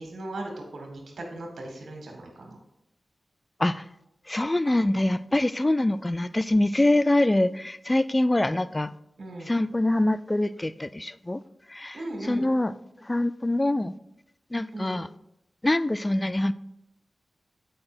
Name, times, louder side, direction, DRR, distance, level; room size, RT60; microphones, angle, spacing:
voice 1, 0.0-2.6 9.2-9.5 11.9-12.5 14.7-15.0, right 2 dB, 75° right, 1.7 m, -37 dB
voice 2, 4.3-8.9 9.4-11.4 11.7-12.7 13.0-13.9 14.5-15.1 15.6-16.5, left 1 dB, 25° left, 0.3 m, -24 dB
7.8 x 4.9 x 4.3 m
cardioid pair, 45°, 0 cm